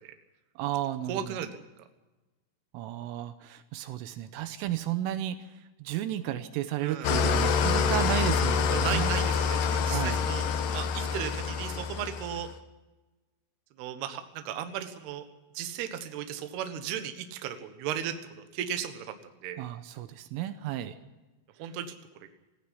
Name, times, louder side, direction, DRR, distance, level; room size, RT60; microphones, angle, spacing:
voice 1, 0.6-1.5 2.7-9.2 9.9-10.2 19.6-21.0, right 12 dB, 80° right, 10 dB, 3.4 m, -33 dB
voice 2, 1.1-1.5 6.8-7.1 8.7-10.4 10.7-12.5 13.8-15.2 15.5-19.1 19.4-19.6 21.6-21.9, right 9 dB, 65° right, 7 dB, 2.9 m, -35 dB
Engine starting / Idling, 7.0-12.5, left 5 dB, 80° left, 2.0 m, -27 dB
18.5 x 15.0 x 9.8 m, 1.1 s
omnidirectional pair, 5.8 m